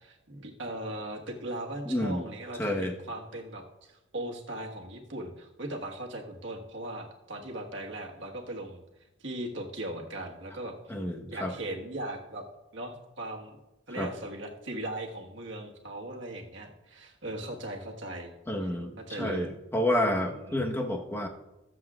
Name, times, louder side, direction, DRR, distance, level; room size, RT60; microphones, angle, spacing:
voice 1, 0.0-8.8 9.2-10.7 11.3-12.4 12.7-13.6 13.9-18.3 19.1-19.5 20.3-20.6, right 1 dB, 70° right, 1 dB, 1.5 m, -38 dB
voice 2, 1.8-2.2 2.6-2.9 10.9-11.5 14.0-14.1 18.5-21.3, left 1 dB, 10° left, 1 dB, 1.2 m, -29 dB
22.0 x 7.6 x 2.4 m, 0.95 s
head